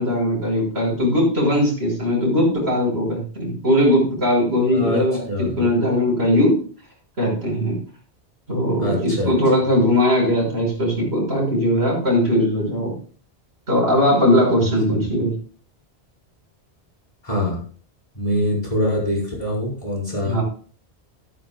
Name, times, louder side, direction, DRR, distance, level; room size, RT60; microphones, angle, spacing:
voice 1, 0.0-6.6 7.2-7.8 8.5-12.9 13.7-15.3 20.2-20.4, left 1 dB, 75° right, -2 dB, 6.5 m, -19 dB
voice 2, 4.7-5.0 5.3-5.5 8.8-9.3 14.9-15.1 17.2-17.6 18.2-20.4, left 1 dB, 30° left, -4 dB, 5.2 m, -24 dB
14.0 x 13.5 x 2.4 m, 0.43 s
omnidirectional pair, 1.1 m